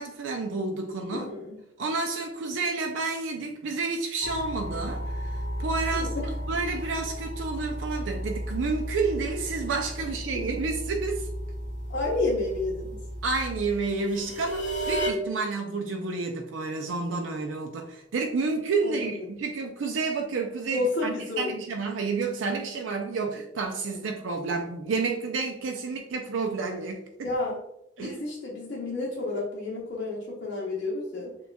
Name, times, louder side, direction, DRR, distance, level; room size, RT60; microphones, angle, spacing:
voice 1, 0.0-1.3 1.8-6.1 6.5-11.3 13.2-27.0 28.0-28.2, right 4 dB, 85° right, 3 dB, 0.4 m, -30 dB
voice 2, 1.1-1.6 5.9-6.3 10.3-10.5 11.9-12.9 18.8-19.4 20.7-21.5 27.2-27.6 28.0-31.3, left 2 dB, 60° left, -6 dB, 0.8 m, -30 dB
sound 1, 4.2-15.1, equal, 40° left, 1.5 m, -34 dB
6.7 x 2.3 x 2.2 m, 0.84 s
head